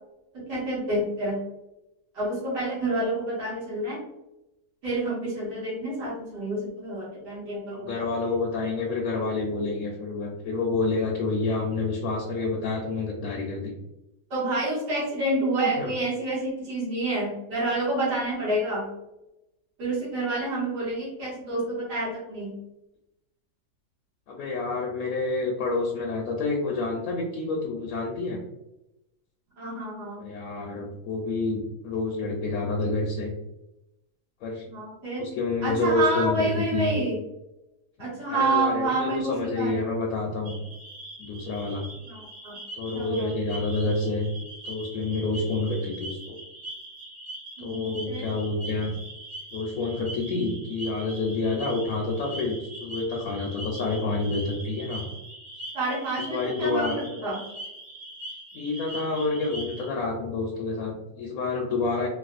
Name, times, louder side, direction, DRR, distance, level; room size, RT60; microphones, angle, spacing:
voice 1, 0.3-1.4 2.1-4.0 4.8-8.0 14.3-18.9 19.8-22.5 29.6-30.2 34.7-35.3 35.6-37.2 38.0-39.8 42.1-42.6 42.9-43.3 47.6-48.3 55.7-57.4, right 2 dB, 75° right, -8 dB, 2.2 m, -28 dB
voice 2, 7.7-13.7 15.8-15.9 24.3-28.4 30.2-33.3 34.4-34.6 35.2-36.9 38.3-40.6 41.2-41.8 42.8-44.3 44.6-46.4 47.6-48.9 49.5-55.1 56.2-57.0 58.5-62.1, left 3 dB, 70° left, 0 dB, 0.9 m, -28 dB
sound 1, 40.4-59.9, right 1 dB, 55° right, 1.4 m, -42 dB
4.0 x 2.3 x 2.5 m, 0.92 s
omnidirectional pair, 1.8 m